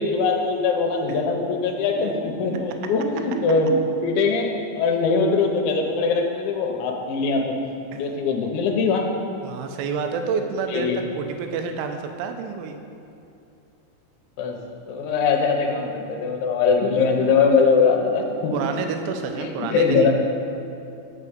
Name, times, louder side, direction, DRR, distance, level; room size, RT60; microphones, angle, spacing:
voice 1, 0.0-7.6 7.9-9.1 10.7-11.1 14.4-14.6 14.9-18.8 19.4-20.1, left 4 dB, 85° left, 2 dB, 3.1 m, -22 dB
voice 2, 9.4-12.8 15.7-16.0 18.5-20.1, right 5 dB, 85° right, 6 dB, 3.1 m, -29 dB
8.3 x 7.1 x 5.1 m, 2.7 s
omnidirectional pair, 5.3 m